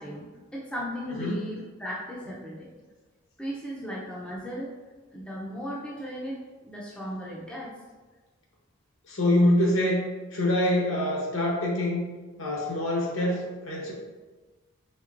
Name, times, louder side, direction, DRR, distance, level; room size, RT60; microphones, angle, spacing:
voice 1, 0.0-2.7 3.4-4.7 5.1-6.4 6.6-7.7, equal, 5° left, -6 dB, 0.5 m, -36 dB
voice 2, 9.1-10.0 10.3-12.0 12.4-13.9, left 1 dB, 65° left, -2 dB, 1.0 m, -25 dB
4.4 x 3.5 x 2.5 m, 1.3 s
head